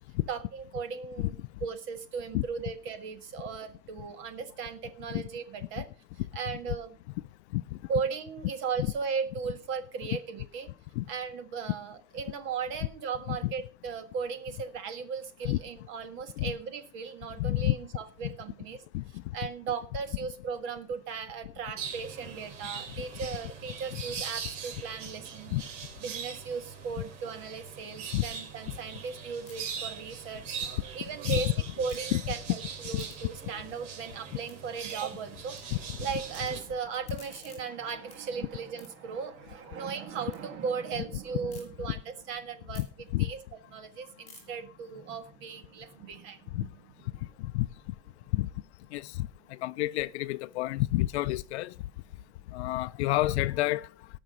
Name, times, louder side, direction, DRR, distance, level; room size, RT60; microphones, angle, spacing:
voice 1, 0.3-1.3 1.6-5.9 6.3-7.0 7.9-10.7 11.1-18.8 19.1-25.6 26.0-30.4 30.9-31.5 31.8-35.6 35.8-43.4 43.7-47.3, right 6 dB, 35° right, 1.6 m, -37 dB
voice 2, 17.4-17.8 18.2-18.3 18.9-19.2 23.0-23.1 25.5-25.6 28.1-28.2 31.2-31.4 32.1-32.2 32.9-33.0 42.7-42.9 43.1-43.3 46.5-46.6 47.4-47.7 48.3-48.5 48.9-51.7 52.5-53.9, left 17 dB, 65° left, 0.6 m, -29 dB
sound 1, 21.8-36.6, right 6 dB, 85° right, 3.5 m, -41 dB
sound 2, 29.4-31.5 31.8-32.4 32.7-35.6 35.9-36.4 36.8-40.4 40.8-41.6 42.1-46.2, left 4 dB, 20° left, 4.6 m, -58 dB
18.0 x 6.1 x 5.3 m
supercardioid pair, 175°, 37 cm